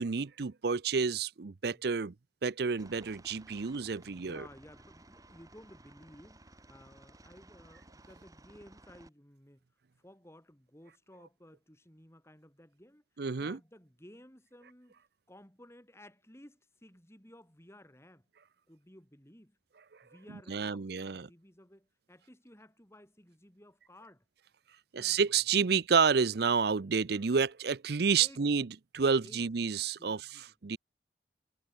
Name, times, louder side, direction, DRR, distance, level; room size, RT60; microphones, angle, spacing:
voice 1, 0.0-2.1 2.4-4.4 13.2-13.6 20.5-21.3 24.9-28.7 28.9-30.2 30.6-30.8, right 5 dB, 60° right, 0.6 m, -29 dB
Aircraft, 2.8-9.1, right 1 dB, 20° right, 2.2 m, -57 dB
voice 2, 4.0-9.6 10.0-18.3 18.7-19.6 20.0-24.2 24.9-25.2 28.0-28.5 29.2-29.5 30.0-30.5, left 1 dB, 15° left, 4.2 m, -56 dB
head